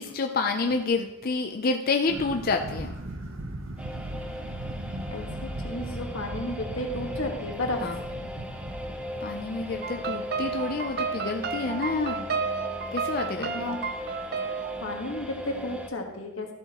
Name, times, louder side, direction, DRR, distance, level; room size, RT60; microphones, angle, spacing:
voice 1, 0.0-2.9 7.8-8.0 9.2-12.3 12.9-13.6, left 3 dB, 45° left, 4 dB, 0.5 m, -28 dB
sound 1, 2.1-11.1, right 1 dB, 75° right, 0.9 m, -38 dB
sound 2, 3.8-15.9, left 1 dB, 5° right, 0.7 m, -39 dB
voice 2, 5.1-7.9 13.3-13.8 14.8-16.5, left 1 dB, 90° left, 2 dB, 1.5 m, -33 dB
sound 3, 9.8-14.8, right 5 dB, 50° right, 0.5 m, -32 dB
13.5 x 7.6 x 3.0 m, 0.98 s
head